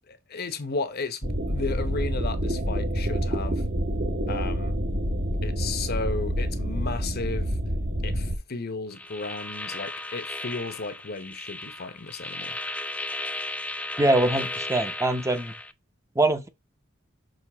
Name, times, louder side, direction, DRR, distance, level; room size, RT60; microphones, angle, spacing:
voice 1, 0.1-3.6 4.3-4.8 5.4-7.6 8.0-12.6, left 3 dB, 50° left, 0.9 m, -34 dB
sound 1, 1.2-8.4, equal, 45° right, 1.2 m, -27 dB
sound 2, 8.9-15.7, left 2 dB, 5° left, 0.4 m, -35 dB
voice 2, 14.0-15.5 16.2-16.5, right 2 dB, 15° right, 0.8 m, -23 dB
6.4 x 3.2 x 5.9 m
head